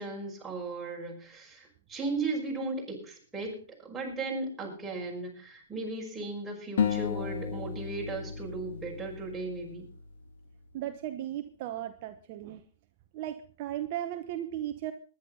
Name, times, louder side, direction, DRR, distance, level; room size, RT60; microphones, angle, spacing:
voice 1, 0.0-9.9, right 3 dB, 10° right, -2 dB, 5.8 m, -36 dB
sound 1, 6.8-10.0, left 7 dB, 65° left, 2.5 m, -33 dB
voice 2, 10.7-12.6 13.1-14.9, right 12 dB, 45° right, 8 dB, 1.0 m, -36 dB
20.0 x 10.5 x 4.0 m, 0.38 s
hypercardioid pair, 120°, 0 cm